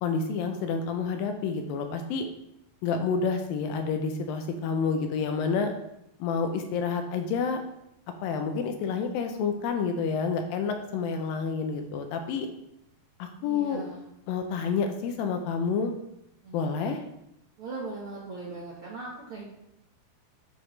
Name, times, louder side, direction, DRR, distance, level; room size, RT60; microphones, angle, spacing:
voice 1, 0.0-2.3 2.8-5.7 6.2-7.6 8.2-12.5 13.2-13.8 14.3-15.9 16.5-17.0, left 5 dB, 80° left, 6 dB, 2.3 m, -29 dB
voice 2, 13.4-14.1 16.4-17.0 17.6-19.4, right 3 dB, 65° right, -5 dB, 1.3 m, -39 dB
9.7 x 5.0 x 3.2 m, 0.81 s
omnidirectional pair, 4.3 m